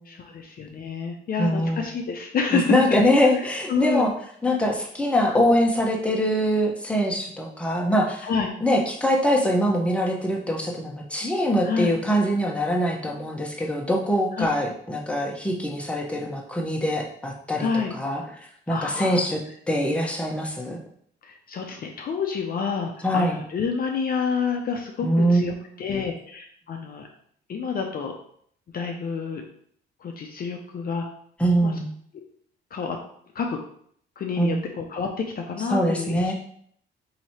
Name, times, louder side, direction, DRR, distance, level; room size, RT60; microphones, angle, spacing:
voice 1, 0.1-3.0 3.7-4.1 8.2-8.5 11.6-11.9 14.3-14.5 17.6-18.0 18.7-19.2 21.2-27.1 27.5-28.1 28.7-29.4 30.0-31.0 31.6-31.7 32.7-33.0 33.3-33.6 34.2-36.3, left 5 dB, 50° left, 2 dB, 0.5 m, -28 dB
voice 2, 1.4-1.8 2.5-4.1 4.4-8.3 8.6-17.7 17.9-18.2 18.7-19.4 19.7-20.8 23.0-23.4 25.0-25.4 31.4-31.9 34.4-34.6 35.7-36.3, equal, 5° left, -1 dB, 0.8 m, -23 dB
3.0 x 2.8 x 4.2 m, 0.64 s
cardioid pair, 90°, 20 cm